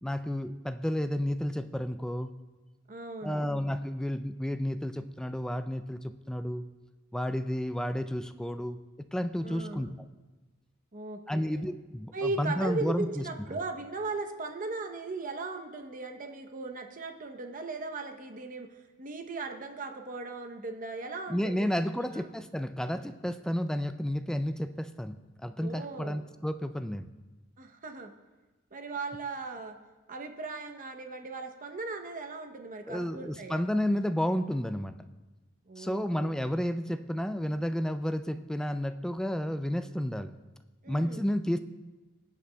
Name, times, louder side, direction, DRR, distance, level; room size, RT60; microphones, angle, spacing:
voice 1, 0.0-2.3 3.2-6.6 7.1-9.9 11.3-13.2 21.3-27.1 32.9-34.9 35.8-40.3 40.9-41.6, equal, 5° left, 10 dB, 0.3 m, -31 dB
voice 2, 2.9-3.5 9.4-10.0 10.9-11.7 12.1-18.7 19.0-21.7 21.9-22.3 25.6-26.3 27.6-28.1 28.7-29.8 30.1-33.7 35.7-36.3 40.8-41.3, right 3 dB, 40° right, 5 dB, 0.8 m, -38 dB
20.5 x 8.4 x 2.2 m, 1.2 s
head